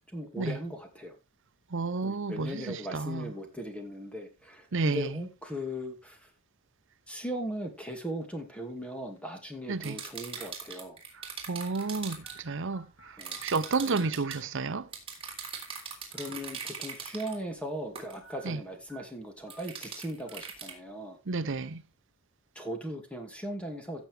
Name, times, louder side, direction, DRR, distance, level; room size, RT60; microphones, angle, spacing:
voice 1, 0.1-1.1 2.0-6.2 7.1-11.0 13.2-13.4 13.9-14.1 16.1-21.2 22.6-24.1, equal, 5° left, 2.3 m, -38 dB
voice 2, 1.7-3.3 4.7-5.2 9.7-10.0 11.5-14.9 18.4-18.6 21.3-21.8, right 3 dB, 65° right, 0.8 m, -31 dB
sound 1, 8.2-8.4 9.2-9.3 10.4-10.5 11.2-11.3 11.7-11.9 12.2-13.4 13.6-14.4 14.7-14.8 16.1-16.4 16.7-16.8 18.2-18.4 18.9-19.0 19.5-19.6 20.3-20.4, right 4 dB, 80° left, 5.3 m, -52 dB
sound 2, 9.8-12.4 13.2-14.4 14.9-17.4 18.0-18.2 19.5-20.7, right 6 dB, 25° right, 3.7 m, -41 dB
16.0 x 7.1 x 3.4 m
head